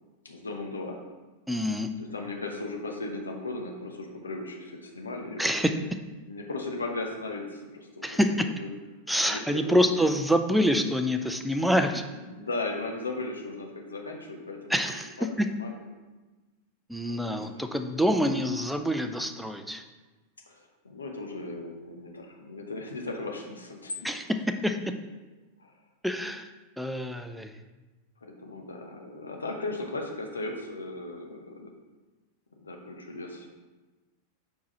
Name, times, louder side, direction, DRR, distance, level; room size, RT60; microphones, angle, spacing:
voice 1, 0.2-1.0 2.0-5.6 6.3-8.2 8.6-8.7 9.2-10.1 11.6-11.7 12.1-14.8 15.2-15.7 17.3-17.5 20.5-24.1 25.6-25.7 28.2-31.7 32.6-33.5, left 2 dB, 75° left, 2 dB, 1.0 m, -37 dB
voice 2, 1.5-1.9 5.4-5.7 8.0-8.5 9.1-12.1 14.7-15.5 16.9-19.8 24.0-24.8 26.0-26.5 26.8-27.5, equal, ahead, 6 dB, 0.5 m, -26 dB
6.0 x 4.7 x 4.2 m, 1.2 s
figure-of-eight pair, 90°, 0 cm